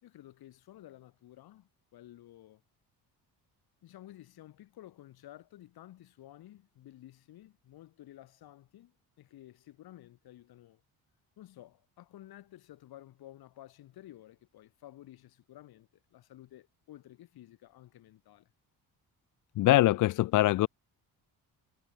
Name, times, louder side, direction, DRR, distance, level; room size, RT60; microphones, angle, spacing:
voice 1, 0.0-2.6 3.8-10.8 11.4-18.5, left 14 dB, 70° left, 4.7 m, -53 dB
voice 2, 19.6-20.7, left 16 dB, 55° left, 0.4 m, -23 dB
cardioid pair, 150°, 38 cm